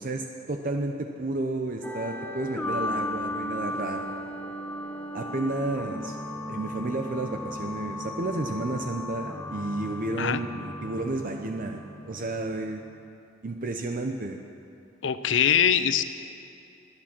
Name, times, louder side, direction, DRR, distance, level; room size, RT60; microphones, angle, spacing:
voice 1, 0.0-4.2 5.1-6.1 6.5-12.8 13.4-14.4, right 2 dB, 45° right, 4 dB, 0.7 m, -31 dB
sound 1, 1.8-12.8, left 1 dB, 10° left, 1.0 m, -36 dB
voice 2, 15.0-16.0, left 8 dB, 80° left, 12 dB, 0.6 m, -22 dB
22.5 x 8.7 x 6.1 m, 2.5 s
head